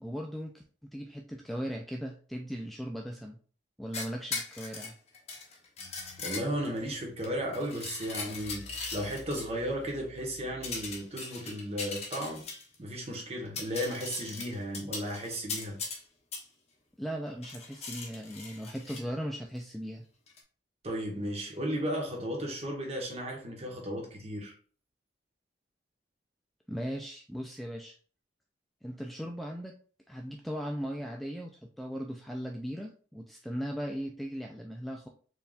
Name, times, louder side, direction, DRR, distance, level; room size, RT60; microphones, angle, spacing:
voice 1, 0.0-3.4 3.8-4.9 17.0-20.1 26.7-28.0 28.8-29.7 30.1-31.5 31.8-35.1, equal, ahead, 0.3 m, -38 dB
sound 1, 3.9-6.8 7.2-9.5 10.6-12.8 13.1-13.2 13.5-16.0 16.3-16.4 17.4-19.0 20.3-20.4, left 4 dB, 35° left, 1.0 m, -39 dB
sound 2, 5.8-11.2, left 1 dB, 70° left, 0.6 m, -53 dB
voice 2, 6.2-12.5 12.8-15.8 20.8-24.5, equal, 35° right, 1.3 m, -35 dB
4.6 x 3.5 x 2.4 m
head